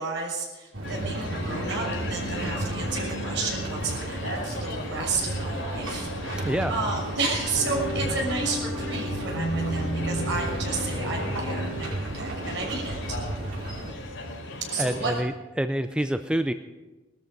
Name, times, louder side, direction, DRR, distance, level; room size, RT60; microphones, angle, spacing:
voice 1, 0.0-13.2 14.7-15.1, right 3 dB, 60° right, -1 dB, 6.3 m, -32 dB
sound 1, 0.7-13.9, right 1 dB, 85° right, 5.0 m, -33 dB
sound 2, 0.8-15.2, left 1 dB, 85° left, 5.0 m, -35 dB
voice 2, 6.4-6.8 14.8-15.3 15.6-16.5, right 1 dB, 5° right, 8 dB, 0.4 m, -26 dB
20.0 x 13.5 x 5.3 m, 1.2 s
head